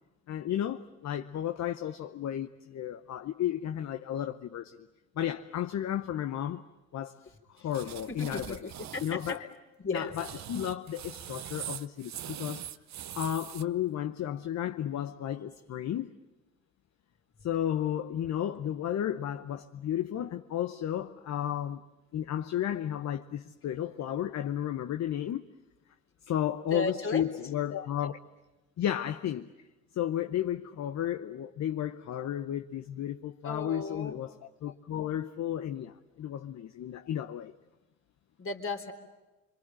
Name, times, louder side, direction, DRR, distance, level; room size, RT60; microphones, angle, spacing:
voice 1, 0.3-4.9 5.2-6.6 6.9-7.2 7.5-8.7 9.0-9.5 9.9-12.7 13.1-16.1 17.4-21.8 22.1-25.5 26.3-28.2 28.8-29.5 29.9-37.5, left 11 dB, 65° left, 0.9 m, -33 dB
sound 1, 7.7-9.4 10.0-13.6, right 11 dB, 65° right, 0.9 m, -42 dB
voice 2, 8.1-9.2 9.8-10.1 26.7-27.2 33.4-34.2 38.4-38.9, left 3 dB, 45° left, 3.7 m, -35 dB
27.5 x 24.5 x 9.0 m
cardioid pair, 90°, 30 cm